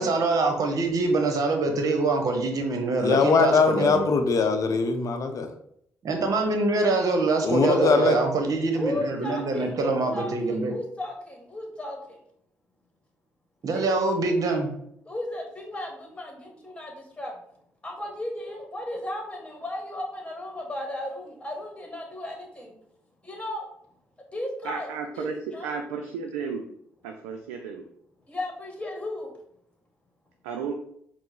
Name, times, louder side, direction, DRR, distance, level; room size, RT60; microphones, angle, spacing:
voice 1, 0.0-4.1 6.0-10.7 13.6-14.7, right 3 dB, 50° right, 5 dB, 0.9 m, -24 dB
voice 2, 3.0-5.5 7.4-8.2, left 4 dB, 50° left, 6 dB, 0.6 m, -22 dB
voice 3, 7.7-8.3 8.7-12.2 13.7-13.8 15.0-17.3 17.8-22.7 23.2-23.7 24.3-24.9 25.1-25.7 28.3-29.3, left 1 dB, 15° left, 2 dB, 1.4 m, -34 dB
voice 4, 24.6-26.6 27.0-27.9 30.4-30.7, right 6 dB, 80° right, 4 dB, 0.4 m, -33 dB
4.3 x 2.0 x 4.5 m, 0.71 s
hypercardioid pair, 45°, 7 cm